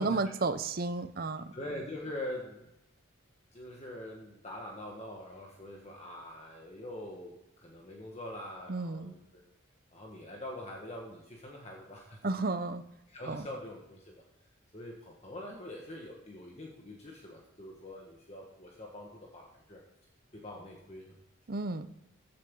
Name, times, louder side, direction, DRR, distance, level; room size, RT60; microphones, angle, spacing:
voice 1, 0.0-1.5 8.7-9.1 12.2-12.8 13.3-13.5 21.5-21.9, right 3 dB, 45° right, 12 dB, 0.6 m, -32 dB
voice 2, 1.5-2.7 3.5-9.4 9.9-12.2 13.1-14.2 14.7-19.8 20.3-21.1, left 1 dB, 30° left, -1 dB, 1.5 m, -44 dB
15.0 x 8.7 x 3.8 m, 0.89 s
head